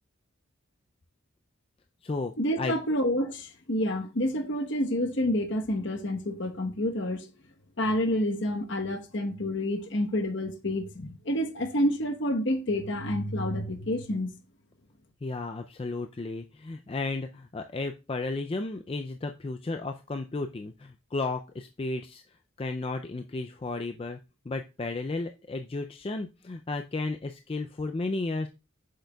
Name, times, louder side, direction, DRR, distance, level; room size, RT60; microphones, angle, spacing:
voice 1, 2.4-7.3 7.8-14.3, left 1 dB, 55° left, 1.1 m, -28 dB
voice 2, 15.2-22.2 22.6-24.2 24.5-28.5, left 3 dB, 25° left, 0.3 m, -33 dB
8.0 x 6.5 x 2.3 m
head